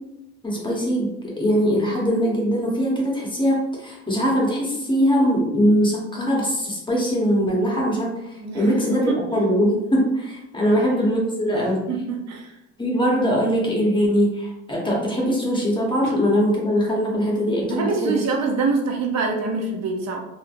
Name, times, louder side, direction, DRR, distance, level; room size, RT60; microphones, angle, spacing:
voice 1, 0.4-8.1 8.5-11.9 12.8-18.1, equal, 15° left, -3 dB, 0.9 m, -21 dB
voice 2, 8.4-9.2 10.6-11.0 11.5-11.6 11.9-12.5 16.0-16.1 17.7-20.2, right 4 dB, 60° right, 2 dB, 0.6 m, -25 dB
2.8 x 2.5 x 2.5 m, 0.87 s
cardioid pair, 90°, 30 cm